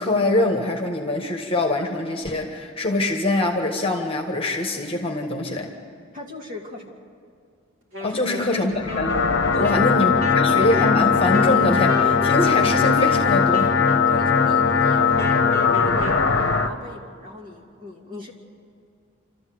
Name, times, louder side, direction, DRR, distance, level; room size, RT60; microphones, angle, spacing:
voice 1, 0.0-5.7 8.0-9.2 9.6-13.7, left 2 dB, 25° left, 3 dB, 1.5 m, -24 dB
voice 2, 6.1-6.9 8.1-8.6 9.5-10.5 14.1-18.3, left 2 dB, 40° right, -1 dB, 2.6 m, -38 dB
Wind instrument woodwind instrument, 7.9-16.3, equal, 60° right, 3.2 m, -34 dB
sound 1, 8.7-16.7, left 5 dB, 50° left, 1.0 m, -19 dB
28.0 x 13.5 x 7.9 m, 2.3 s
head